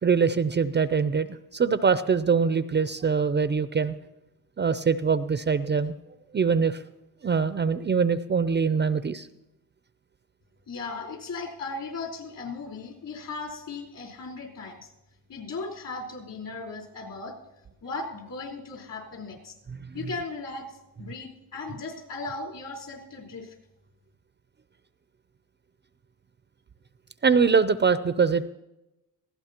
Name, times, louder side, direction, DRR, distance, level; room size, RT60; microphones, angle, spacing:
voice 1, 0.0-3.9 4.6-6.0 6.3-6.8 7.2-9.3 19.9-20.0 27.2-28.5, right 5 dB, 30° right, 13 dB, 0.6 m, -23 dB
voice 2, 10.7-14.9 15.3-17.4 17.8-19.5 19.9-23.5, left 3 dB, 55° left, -1 dB, 4.4 m, -37 dB
20.5 x 15.5 x 3.0 m, 0.92 s
supercardioid pair, 70°, 38 cm